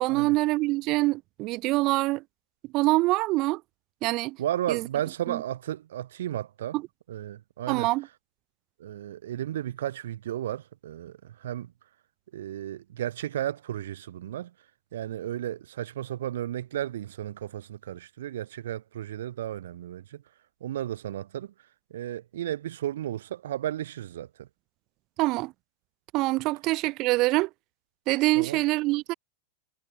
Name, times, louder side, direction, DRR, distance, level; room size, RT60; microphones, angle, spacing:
voice 1, 0.0-2.2 2.7-3.6 4.0-4.4 4.7-4.9 5.3-5.4 6.7-6.8 7.7-8.1 25.2-25.5 26.1-27.5 28.1-29.1, right 21 dB, 45° right, 0.7 m, -25 dB
voice 2, 4.4-6.8 7.1-7.9 8.8-11.7 12.3-14.5 14.9-20.2 20.6-21.5 21.9-24.5 28.4-28.6, right 12 dB, 85° right, 0.6 m, -34 dB
supercardioid pair, 140°, 0 cm